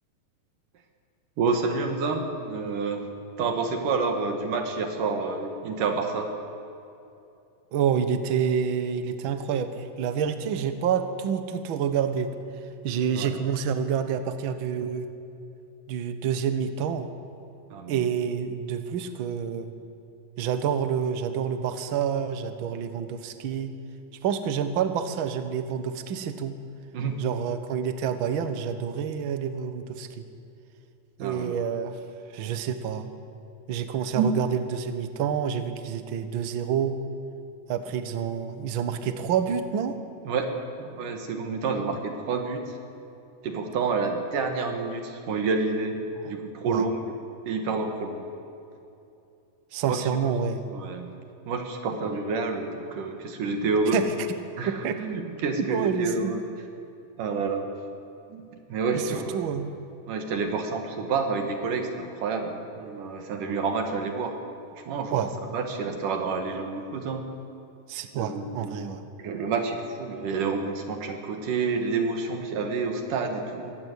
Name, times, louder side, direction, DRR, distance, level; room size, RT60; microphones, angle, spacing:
voice 1, 1.4-3.1 3.4-6.3 13.1-13.4 17.7-18.1 26.9-27.2 31.2-31.6 34.2-34.3 40.2-40.5 40.8-42.8 43.4-47.1 47.5-48.3 49.8-50.2 50.7-51.1 51.5-54.0 54.6-56.4 57.2-57.7 58.3-59.6 60.1-64.4 64.9-67.3 68.1-68.8 69.2-73.8, right 4 dB, 70° right, 4 dB, 3.2 m, -29 dB
voice 2, 7.7-12.3 12.8-15.1 15.9-17.1 17.9-19.7 20.4-23.7 24.2-26.6 27.2-30.2 31.2-32.0 32.3-33.1 33.7-37.0 37.7-40.0 46.6-46.9 49.7-50.7 53.9-54.1 54.7-55.0 55.6-56.4 58.9-59.7 65.1-65.3 67.9-69.0, right 7 dB, 55° right, 9 dB, 1.4 m, -28 dB
23.5 x 17.5 x 8.3 m, 2.7 s
omnidirectional pair, 3.9 m